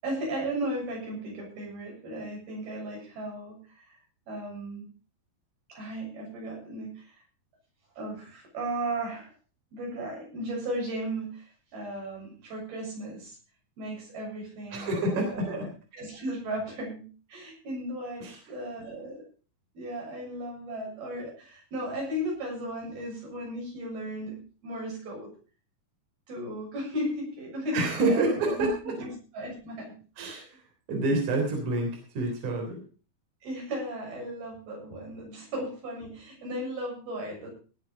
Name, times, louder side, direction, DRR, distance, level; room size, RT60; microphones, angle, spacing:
voice 1, 0.0-4.0 4.3-4.9 5.7-7.1 8.0-9.3 9.7-11.5 11.7-13.4 13.8-15.6 15.9-19.3 19.8-25.3 26.3-30.0 33.4-37.5, right 1 dB, 85° right, -1 dB, 8.8 m, -36 dB
voice 2, 14.7-15.6 18.2-18.4 27.7-28.7 30.2-30.4 30.9-32.8, right 2 dB, 55° right, 2 dB, 4.8 m, -27 dB
18.5 x 8.1 x 5.3 m, 0.37 s
omnidirectional pair, 4.3 m